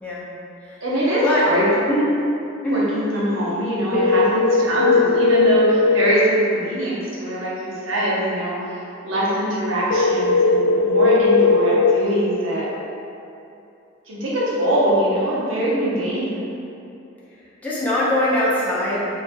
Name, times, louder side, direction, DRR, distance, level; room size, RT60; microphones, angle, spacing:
voice 1, 0.8-1.7 2.7-12.7 14.1-16.4, equal, 80° right, -6 dB, 0.8 m, -23 dB
sound 1, 3.9-5.9 9.9-11.9, left 3 dB, 75° left, 0.5 m, -17 dB
voice 2, 17.6-19.1, left 1 dB, 10° left, -8 dB, 0.6 m, -21 dB
3.9 x 3.1 x 2.2 m, 2.7 s
head